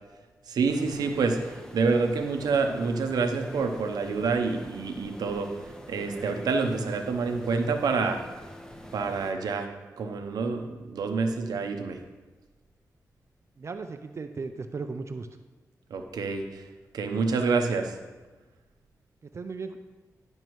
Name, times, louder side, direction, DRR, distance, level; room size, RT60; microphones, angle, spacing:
voice 1, 0.5-5.5 5.9-8.2 8.9-9.7 10.0-12.0 15.9-16.6 16.9-17.9, right 4 dB, 90° right, 5 dB, 0.8 m, -27 dB
sound 1, 0.7-9.3, equal, 10° left, 0.8 m, -45 dB
voice 2, 13.6-15.3 19.3-19.8, right 4 dB, 45° right, 7 dB, 0.4 m, -36 dB
11.0 x 5.3 x 3.1 m, 1.2 s
cardioid pair, 65°, 6 cm